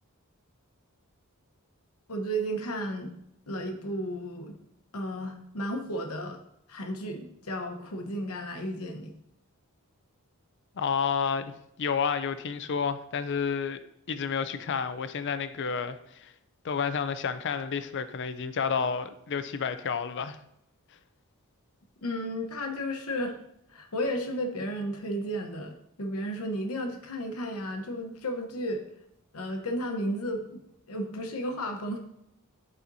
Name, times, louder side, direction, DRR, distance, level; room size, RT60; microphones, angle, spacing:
voice 1, 2.1-3.1 3.5-4.5 4.9-6.4 6.7-9.1 22.0-23.4 23.7-28.8 29.3-30.6 30.9-32.0, equal, 75° left, 1.0 m, -33 dB
voice 2, 10.8-11.5 11.8-13.8 14.1-16.3 16.6-20.4, left 6 dB, 55° left, 0.5 m, -30 dB
11.0 x 4.3 x 2.7 m
head